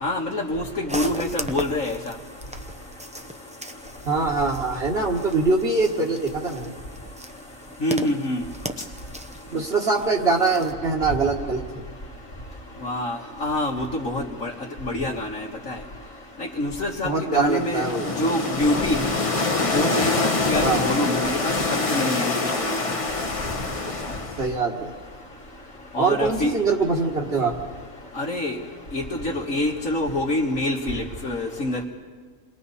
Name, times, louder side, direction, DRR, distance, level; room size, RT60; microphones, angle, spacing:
voice 1, 0.0-2.0 7.8-8.4 12.8-14.5 14.8-15.7 16.6-17.8 18.2-19.0 19.7-21.5 21.9-22.8 25.9-26.5 28.2-28.6 28.9-31.8, left 1 dB, 75° left, -4 dB, 2.1 m, -26 dB
sound 1, 0.9-10.7, right 1 dB, 5° right, 0.6 m, -38 dB
voice 2, 4.1-6.7 9.5-11.8 17.0-18.1 20.6-20.8 24.4-24.9 26.0-27.5, right 4 dB, 50° right, -2 dB, 1.8 m, -23 dB
sound 2, 17.4-24.5, left 3 dB, 25° left, 1.1 m, -25 dB
29.0 x 21.5 x 4.2 m, 1.5 s
omnidirectional pair, 1.4 m